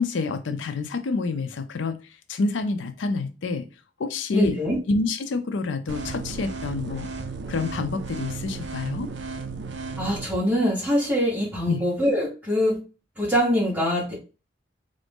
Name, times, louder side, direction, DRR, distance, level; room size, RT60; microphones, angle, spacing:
voice 1, 0.0-2.0 2.3-3.7 4.0-4.6 4.9-7.1 7.5-9.1 11.6-11.8, left 3 dB, 80° left, 0.5 m, -27 dB
voice 2, 4.3-4.8 10.0-12.8 13.2-14.2, equal, 10° right, 1.5 m, -23 dB
sound 1, 5.9-10.3, right 4 dB, 70° right, 0.5 m, -34 dB
3.9 x 2.6 x 3.5 m
head